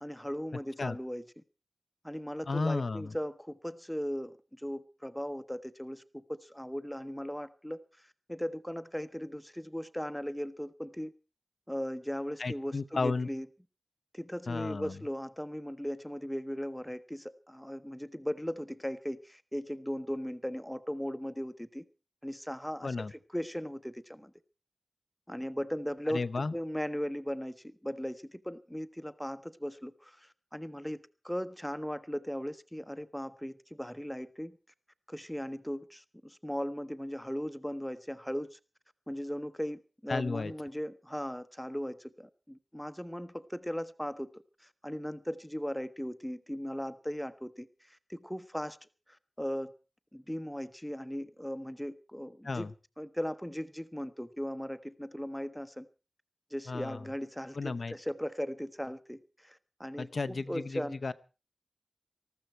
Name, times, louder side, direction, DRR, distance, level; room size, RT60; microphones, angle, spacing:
voice 1, 0.0-1.4 2.0-7.8 8.3-11.1 11.7-13.5 14.1-21.8 22.2-24.3 25.3-34.6 35.1-38.6 39.1-44.3 44.6-49.7 50.1-52.7 53.0-55.9 56.5-61.0, equal, 5° left, 0.9 m, -38 dB
voice 2, 2.5-3.2 12.4-13.3 14.5-15.0 22.8-23.1 26.1-26.5 40.1-40.5 52.4-52.7 56.7-57.1 57.5-57.9 60.0-61.1, left 3 dB, 65° left, 0.7 m, -33 dB
19.5 x 14.0 x 4.5 m
wide cardioid pair, 75°, 0 cm